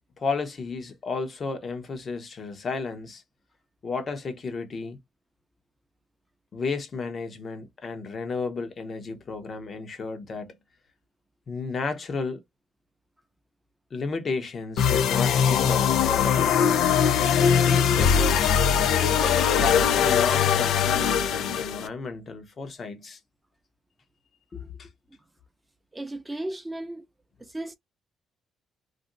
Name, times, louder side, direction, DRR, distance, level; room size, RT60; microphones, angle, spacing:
voice 1, 0.2-3.2 3.8-5.0 6.5-10.6 11.5-12.4 13.9-16.6 17.5-18.5 18.9-23.2 24.5-24.9, left 4 dB, 45° left, 0.8 m, -33 dB
sound 1, 14.8-21.9, left 8 dB, 80° left, 0.4 m, -21 dB
voice 2, 25.9-27.0 27.4-27.7, right 1 dB, 15° right, 0.5 m, -35 dB
2.5 x 2.1 x 3.8 m
cardioid pair, 90°, 0 cm